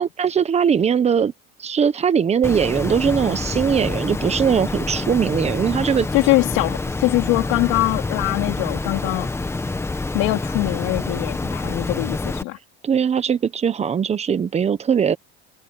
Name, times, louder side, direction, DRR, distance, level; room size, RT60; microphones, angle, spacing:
voice 1, 0.0-1.3 1.6-6.1 12.8-15.2, right 7 dB, 20° right, 1.2 m, -20 dB
Water, 2.4-12.4, left 3 dB, 10° left, 1.5 m, -27 dB
voice 2, 6.1-9.3 10.1-12.6, left 21 dB, 65° left, 3.5 m, -22 dB
cardioid pair, 145°, 30 cm